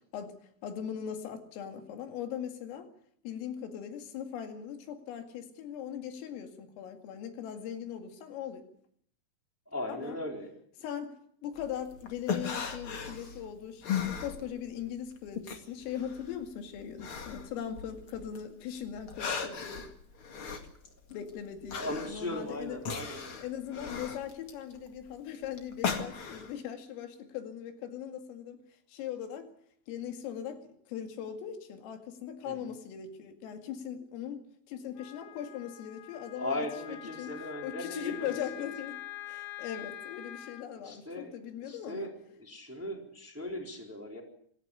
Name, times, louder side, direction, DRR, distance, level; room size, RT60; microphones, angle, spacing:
voice 1, 0.6-2.9 3.2-8.7 9.9-10.2 10.8-11.2 11.4-19.9 21.1-22.8 23.3-28.6 28.9-29.5 29.9-37.4 37.6-39.0 39.3-42.1, left 9 dB, 90° left, 6 dB, 4.8 m, -40 dB
voice 2, 9.7-10.5 21.7-23.4 32.4-32.7 36.3-38.3 38.6-38.7 40.8-41.3 41.6-42.1 42.4-44.2, left 1 dB, 5° right, 2 dB, 3.2 m, -38 dB
sound 1, 11.6-14.9 15.2-18.4 18.8-26.6, left 6 dB, 50° left, 1.7 m, -37 dB
Wind instrument woodwind instrument, 35.0-40.7, left 14 dB, 70° left, 2.4 m, -45 dB
26.5 x 13.5 x 9.8 m, 0.66 s
omnidirectional pair, 5.7 m